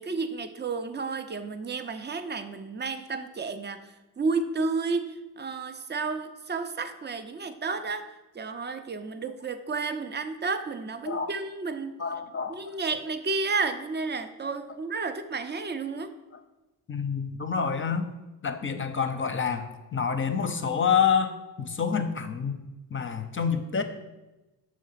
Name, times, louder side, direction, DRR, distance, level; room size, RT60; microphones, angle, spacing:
voice 1, 0.0-12.0 12.5-16.1, right 4 dB, 25° right, 9 dB, 0.6 m, -32 dB
voice 2, 12.0-12.6 16.9-18.1 18.4-22.6 22.9-23.8, left 6 dB, 25° left, 8 dB, 0.7 m, -27 dB
6.4 x 3.2 x 5.7 m, 1.0 s
supercardioid pair, 60°, 46 cm